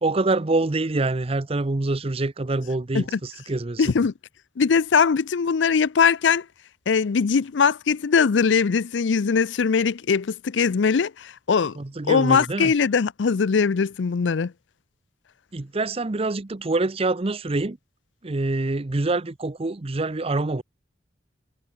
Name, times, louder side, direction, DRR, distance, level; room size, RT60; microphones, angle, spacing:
voice 1, 0.0-3.9 11.8-12.7 15.5-17.8 18.2-20.6, right 2 dB, 30° right, 0.7 m, -25 dB
voice 2, 3.8-4.1 4.6-6.5 6.9-11.8 12.1-14.5, left 5 dB, 80° left, 0.5 m, -21 dB
head